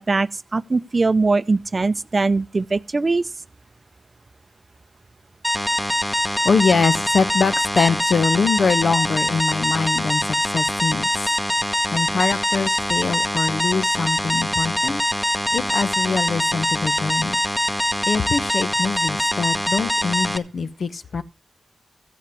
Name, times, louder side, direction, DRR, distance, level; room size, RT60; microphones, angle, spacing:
voice 1, 0.0-3.2, right 3 dB, 40° right, 0.5 m, -21 dB
sound 1, 5.4-20.4, equal, 10° left, 1.2 m, -23 dB
voice 2, 6.4-11.3 11.9-15.0 15.5-17.4 18.0-21.2, left 5 dB, 70° left, 1.0 m, -23 dB
15.0 x 8.3 x 4.6 m
cardioid pair, 75°, 0 cm